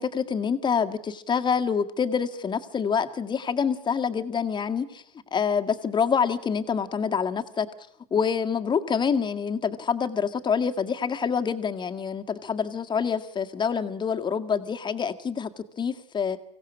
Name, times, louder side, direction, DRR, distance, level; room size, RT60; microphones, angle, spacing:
voice 1, 0.0-5.0 5.3-7.7 8.1-16.4, left 6 dB, 25° left, 7 dB, 1.9 m, -26 dB
24.5 x 17.0 x 6.2 m, 0.72 s
hypercardioid pair, 110°, 20 cm